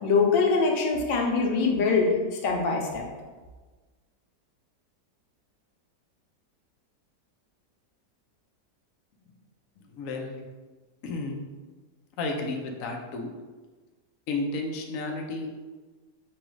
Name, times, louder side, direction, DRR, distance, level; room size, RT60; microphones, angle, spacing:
voice 1, 0.0-2.1 2.4-3.1, left 4 dB, 85° left, 0 dB, 1.4 m, -23 dB
voice 2, 9.9-10.4 11.0-11.4 12.2-13.3 14.3-15.5, left 3 dB, 70° left, 1 dB, 0.8 m, -32 dB
6.0 x 2.3 x 3.1 m, 1.3 s
omnidirectional pair, 1.9 m